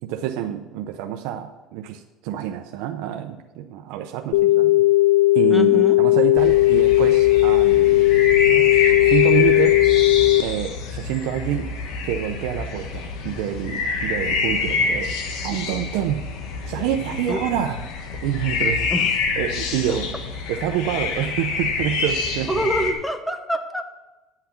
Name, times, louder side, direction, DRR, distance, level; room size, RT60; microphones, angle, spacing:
voice 1, 0.0-4.9 5.3-9.8 10.4-11.7 12.0-15.1 15.4-16.3 16.7-17.8 18.2-18.9 19.4-20.1 20.5-22.7, right 11 dB, 80° right, 5 dB, 0.6 m, -27 dB
sound 1, 4.3-10.4, left 17 dB, 90° left, 0.3 m, -16 dB
voice 2, 5.5-6.0 17.3-17.4 18.9-19.2 19.9-20.0 22.5-23.9, equal, ahead, 8 dB, 0.8 m, -26 dB
sound 2, 6.4-22.9, left 4 dB, 70° left, 1.4 m, -27 dB
9.9 x 5.8 x 5.9 m, 1.1 s
cardioid pair, 140°, 0 cm